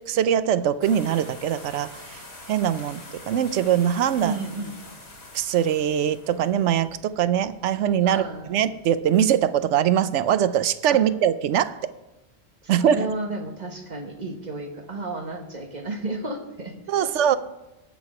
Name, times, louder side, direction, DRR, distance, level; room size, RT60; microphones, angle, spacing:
voice 1, 0.0-2.2 2.5-4.4 5.3-8.2 8.5-11.8 12.7-13.1 16.9-17.4, right 9 dB, 80° right, 14 dB, 0.9 m, -22 dB
sound 1, 0.8-8.9, left 2 dB, 55° left, 2.5 m, -45 dB
voice 2, 4.2-4.8 8.0-8.5 10.9-11.0 12.6-17.1, right 2 dB, 40° right, 4 dB, 1.3 m, -32 dB
18.5 x 6.3 x 4.9 m, 1.0 s
omnidirectional pair, 1.2 m